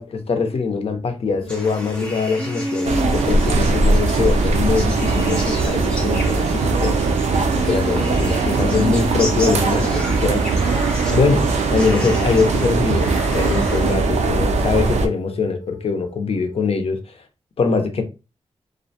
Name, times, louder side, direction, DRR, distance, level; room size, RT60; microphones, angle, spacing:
voice 1, 0.0-7.0 7.6-10.4 11.1-17.2 17.6-18.0, left 4 dB, 60° left, 0.5 m, -22 dB
Female singing, 1.4-10.3 12.5-16.7, equal, 30° right, 0.6 m, -33 dB
sound 1, 1.5-13.9, equal, 10° left, 0.7 m, -34 dB
sound 2, 2.8-15.1, right 3 dB, 80° right, 0.4 m, -20 dB
2.4 x 2.1 x 2.7 m
wide cardioid pair, 80°, 12 cm